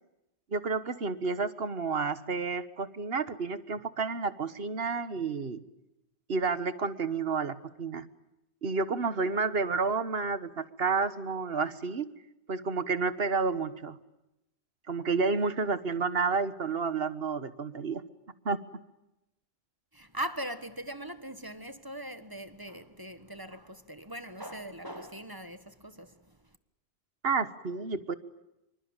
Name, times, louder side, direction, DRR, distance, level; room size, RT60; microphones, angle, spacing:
voice 1, 0.5-5.6 6.3-8.1 8.6-12.1 12.5-14.0 14.9-18.0 18.4-18.6 27.2-28.1, right 4 dB, 70° right, 1.6 m, -30 dB
voice 2, 19.9-26.6, right 1 dB, 20° right, 1.5 m, -40 dB
26.5 x 24.5 x 9.0 m
omnidirectional pair, 1.1 m